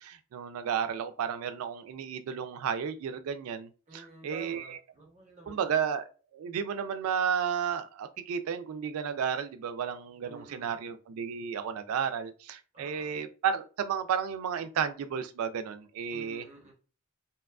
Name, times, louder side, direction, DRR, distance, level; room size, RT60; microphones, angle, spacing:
voice 1, 0.0-4.8 5.5-16.4, right 7 dB, 85° right, 0.3 m, -33 dB
voice 2, 3.9-5.6 10.2-10.8 12.7-13.2 16.1-16.7, right 2 dB, 35° right, 0.8 m, -50 dB
2.8 x 2.3 x 2.2 m
head